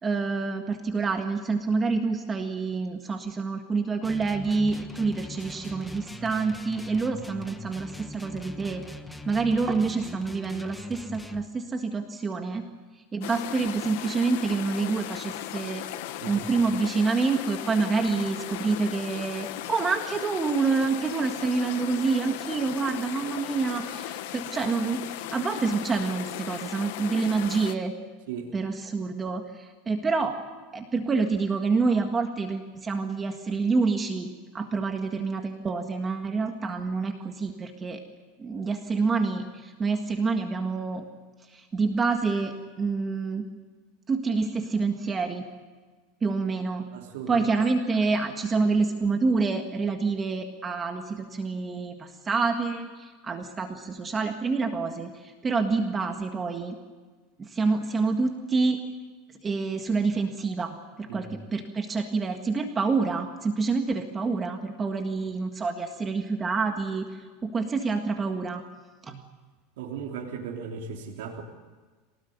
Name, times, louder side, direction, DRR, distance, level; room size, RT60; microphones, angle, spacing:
voice 1, 0.0-8.9 9.2-12.6 13.1-15.9 16.3-27.9 28.5-30.3 30.7-38.0 38.4-41.0 41.5-43.5 44.1-45.5 46.2-46.9 47.3-56.8 57.4-58.8 59.4-68.6 69.0-69.2, right 4 dB, 15° right, 5 dB, 1.7 m, -27 dB
sound 1, 4.0-11.5, left 2 dB, 5° left, 1.2 m, -41 dB
sound 2, 13.2-27.7, left 14 dB, 70° left, 1.3 m, -37 dB
voice 2, 16.2-16.6 28.3-28.5 46.9-47.5 61.1-61.3 69.8-71.4, right 6 dB, 80° right, -2 dB, 3.5 m, -37 dB
24.5 x 19.0 x 9.4 m, 1.4 s
supercardioid pair, 155°, 0 cm